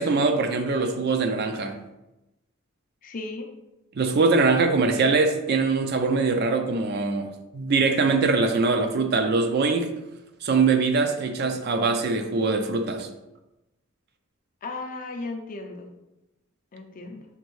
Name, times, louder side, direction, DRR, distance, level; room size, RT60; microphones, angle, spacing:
voice 1, 0.0-1.8 4.0-9.9 10.4-13.1, right 4 dB, 50° right, 6 dB, 0.4 m, -22 dB
voice 2, 3.0-3.5 14.6-15.9 16.7-17.2, left 3 dB, 40° left, 4 dB, 0.5 m, -35 dB
5.1 x 2.6 x 3.1 m, 0.95 s
head